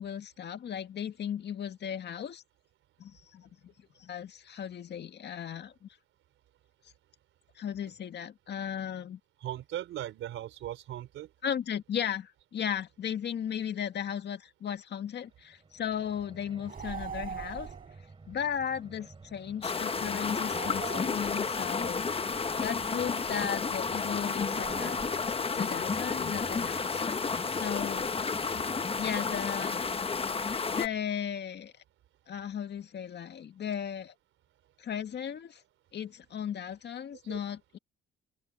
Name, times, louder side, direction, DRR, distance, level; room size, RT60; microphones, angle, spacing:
voice 1, 0.0-2.4 3.0-3.7 4.0-5.9 7.6-9.2 11.4-17.7 18.3-22.1 22.6-25.0 25.5-27.0 27.5-28.1 29.0-30.1 30.7-31.7 32.3-34.1 34.8-35.6 35.9-37.8, left 8 dB, 60° left, 1.9 m, -36 dB
voice 2, 9.4-11.3 37.2-37.4, right 12 dB, 80° right, 4.2 m, -38 dB
sound 1, 15.2-31.0, right 3 dB, 25° right, 4.1 m, -52 dB
sound 2, 16.7-18.0 20.3-21.7 24.4-25.5, right 7 dB, 45° right, 6.2 m, -42 dB
sound 3, 19.6-30.9, left 5 dB, 30° left, 1.1 m, -31 dB
cardioid pair, 90°, 20 cm